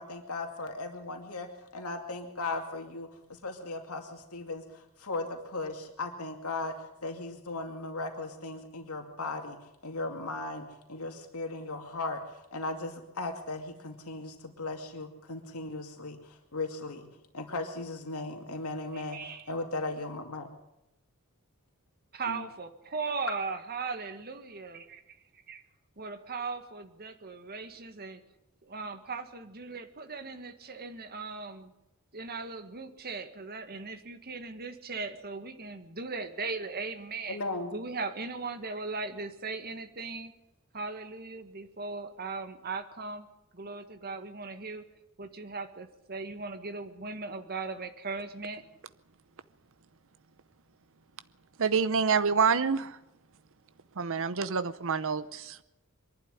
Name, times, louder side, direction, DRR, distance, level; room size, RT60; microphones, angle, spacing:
voice 1, 0.0-1.5 1.7-9.6 9.8-17.1 17.3-20.5 22.3-22.4 37.3-37.7, left 2 dB, 80° left, 2.4 m, -37 dB
voice 2, 18.9-19.5 22.1-25.0 25.5-25.6 26.0-28.2 28.6-31.7 32.1-37.4 37.7-40.3 40.7-43.3 43.5-44.9 45.2-48.6, right 4 dB, 45° right, 1.7 m, -38 dB
voice 3, 51.6-53.0 54.0-55.6, right 5 dB, 65° right, 0.8 m, -27 dB
23.0 x 11.5 x 10.0 m
head